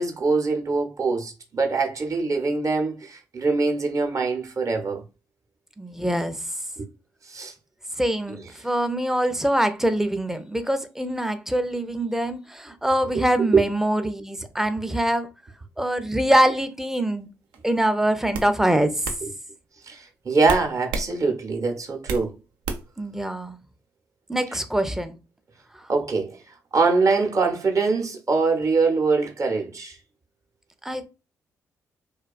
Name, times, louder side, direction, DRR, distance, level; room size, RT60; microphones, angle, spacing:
voice 1, 0.0-5.0 6.8-6.9 7.3-7.5 13.5-13.6 19.2-19.3 19.9-22.3 25.9-26.4 26.7-30.0, right 4 dB, 40° right, 0.7 m, -23 dB
voice 2, 5.8-6.4 8.0-15.3 15.8-17.3 17.6-19.1 23.0-23.6 24.3-25.2 30.8-31.1, right 1 dB, 5° right, 0.4 m, -24 dB
sound 1, 17.5-17.8 18.3-18.5 19.0-19.2 20.5-21.1 21.5-22.3 22.6-23.0, right 4 dB, 75° right, 0.4 m, -30 dB
2.3 x 2.2 x 2.4 m
hypercardioid pair, 45°, 8 cm